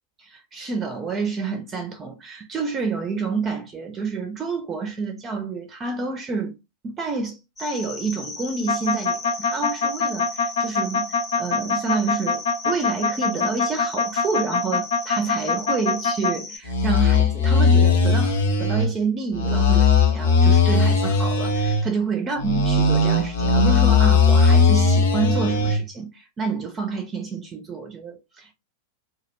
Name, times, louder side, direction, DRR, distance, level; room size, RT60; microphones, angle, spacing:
voice 1, 0.2-6.6 6.8-28.5, right 4 dB, 25° right, 0.4 m, -29 dB
sound 1, 7.6-16.6, left 3 dB, 15° left, 0.8 m, -37 dB
sound 2, 8.7-16.3 16.7-18.9 19.3-21.9 22.4-25.8, left 4 dB, 60° left, 0.6 m, -19 dB
2.2 x 2.0 x 2.9 m
figure-of-eight pair, 90°, 0 cm